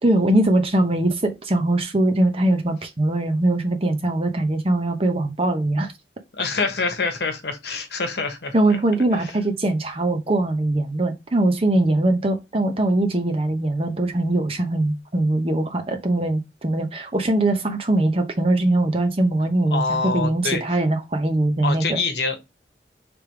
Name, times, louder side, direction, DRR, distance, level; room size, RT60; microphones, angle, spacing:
voice 1, 0.0-5.9 8.5-22.0, right 1 dB, 35° right, 0.8 m, -21 dB
voice 2, 6.4-8.5 9.1-9.3 19.7-20.6 21.6-22.4, left 4 dB, 70° left, 1.1 m, -25 dB
3.4 x 3.3 x 4.6 m
head